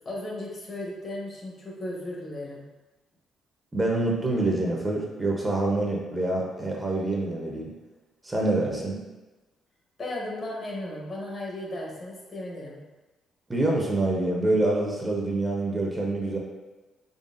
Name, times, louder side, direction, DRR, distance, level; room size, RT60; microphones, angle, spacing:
voice 1, 0.0-2.6 10.0-12.8, left 1 dB, 40° left, -2 dB, 1.0 m, -35 dB
voice 2, 3.7-7.7 8.2-9.0 13.5-16.4, right 2 dB, 20° right, -2 dB, 0.7 m, -26 dB
3.9 x 3.4 x 2.5 m, 1.1 s
cardioid pair, 90°, 0 cm